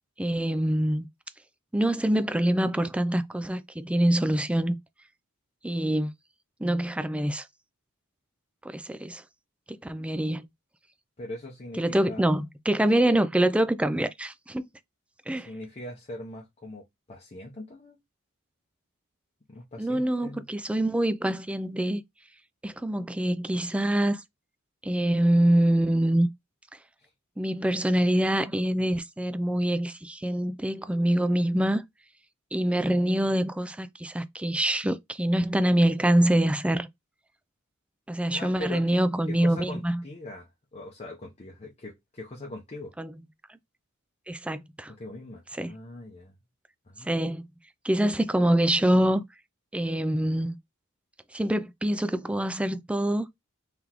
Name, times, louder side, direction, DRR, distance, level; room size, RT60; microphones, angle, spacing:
voice 1, 0.2-1.1 1.7-4.8 5.6-6.1 6.6-7.5 8.6-9.2 9.7-10.4 11.8-14.6 15.3-15.5 19.8-22.0 22.6-24.2 24.8-26.3 27.4-31.8 32.5-36.9 38.1-40.0 43.0-43.2 43.5-43.6 44.3-44.9 45.5-45.7 47.0-47.5 47.8-49.3 49.7-50.6 51.3-53.3, right 1 dB, 5° right, 0.3 m, -25 dB
voice 2, 11.2-12.3 15.3-18.0 19.5-20.5 27.0-27.1 38.3-39.0 39.3-42.9 45.0-46.3 46.9-47.2, left 1 dB, 30° left, 0.8 m, -41 dB
3.9 x 3.4 x 2.9 m
head